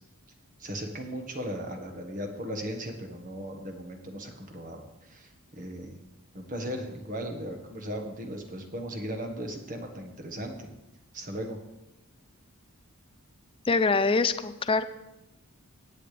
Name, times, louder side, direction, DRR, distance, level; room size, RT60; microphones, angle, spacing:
voice 1, 0.6-5.9 6.3-10.7 11.1-11.6, equal, 35° right, 4 dB, 1.5 m, -37 dB
voice 2, 13.7-14.8, left 4 dB, 25° left, 12 dB, 0.4 m, -24 dB
17.5 x 8.7 x 3.4 m, 0.95 s
head